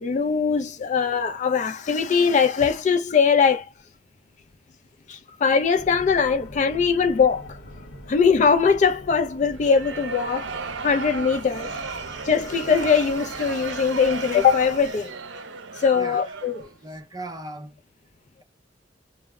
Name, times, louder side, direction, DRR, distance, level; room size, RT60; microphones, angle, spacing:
voice 1, 0.0-3.7 5.1-7.6 8.1-10.5 10.8-11.7 12.2-15.1 15.8-16.6, left 6 dB, 40° left, 0.3 m, -21 dB
sound 1, 5.7-14.9, equal, 70° left, 0.8 m, -44 dB
sound 2, 9.5-16.8, right 4 dB, 85° right, 0.5 m, -35 dB
voice 2, 15.9-16.3 16.8-17.8, right 2 dB, 20° right, 0.5 m, -37 dB
2.0 x 2.0 x 3.4 m
head